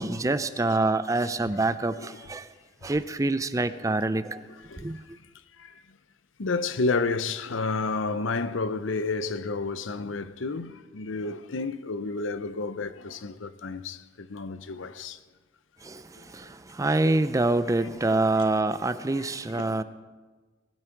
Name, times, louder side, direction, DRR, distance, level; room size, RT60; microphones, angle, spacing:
voice 1, 0.0-2.5 2.8-4.4 4.8-5.0 15.8-19.8, right 2 dB, 15° right, 0.5 m, -26 dB
voice 2, 4.7-5.0 5.5-5.8 6.4-15.2 16.2-16.5 18.1-18.2 19.6-19.7, left 3 dB, 85° left, 0.7 m, -31 dB
19.5 x 12.5 x 4.6 m
head